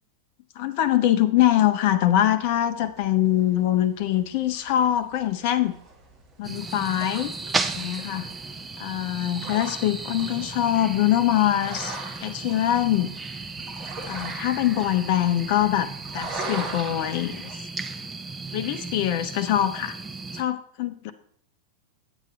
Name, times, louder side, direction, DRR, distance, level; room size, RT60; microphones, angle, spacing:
voice 1, 0.6-5.7 6.4-7.3 7.7-8.3 8.8-13.1 14.1-17.5 18.5-19.9 20.3-21.1, left 12 dB, 45° left, 10 dB, 0.5 m, -23 dB
sound 1, 2.1-17.5, right 3 dB, 30° right, 1.4 m, -41 dB
sound 2, 6.4-20.4, right 3 dB, 15° right, 0.6 m, -35 dB
8.9 x 8.2 x 3.2 m, 0.65 s
figure-of-eight pair, 90°, 0 cm